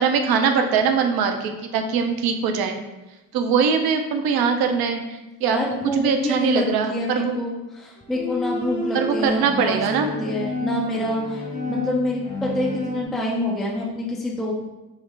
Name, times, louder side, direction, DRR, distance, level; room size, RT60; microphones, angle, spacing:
voice 1, 0.0-2.8 3.3-5.6 5.9-7.3 8.9-10.1, right 6 dB, 50° right, 5 dB, 0.6 m, -22 dB
voice 2, 5.5-14.5, left 1 dB, ahead, -3 dB, 0.4 m, -27 dB
Bowed string instrument, 8.0-13.1, left 2 dB, 75° left, 0.7 m, -30 dB
3.7 x 2.1 x 3.1 m, 1.0 s
hypercardioid pair, 65°, 47 cm